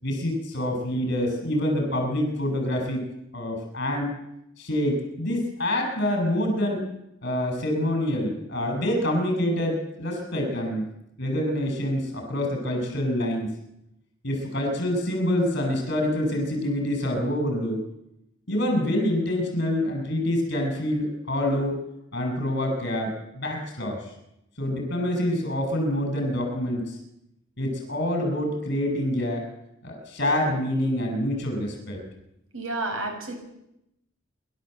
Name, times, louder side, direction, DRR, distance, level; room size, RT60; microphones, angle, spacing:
voice 1, 0.0-3.1 3.3-4.1 4.6-6.8 7.2-10.8 11.2-13.5 14.2-17.8 18.5-21.8 22.1-24.0 24.6-27.0 27.6-29.5 29.8-32.0, left 1 dB, 55° left, 3 dB, 7.3 m, -26 dB
voice 2, 32.5-33.4, right 2 dB, 90° right, 3 dB, 5.7 m, -30 dB
28.0 x 12.5 x 8.0 m, 0.84 s
head